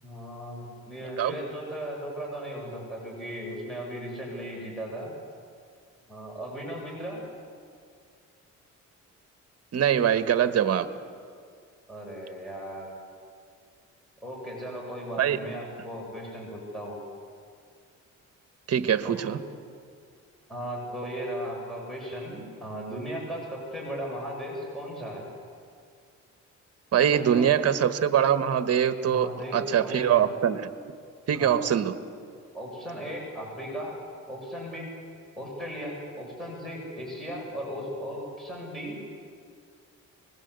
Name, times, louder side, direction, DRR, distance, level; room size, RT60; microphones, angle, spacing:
voice 1, 0.0-5.1 6.1-7.2 11.9-13.0 14.2-17.0 19.0-19.4 20.5-25.3 27.1-27.5 29.0-30.3 31.3-31.6 32.5-33.9 34.3-34.9 35.4-39.0, equal, ahead, -2 dB, 7.5 m, -37 dB
voice 2, 9.7-10.9 15.2-15.4 18.7-19.4 26.9-30.7 31.3-32.0, right 9 dB, 55° right, 11 dB, 1.4 m, -23 dB
24.5 x 21.0 x 8.3 m, 2.2 s
cardioid pair, 90°, 30 cm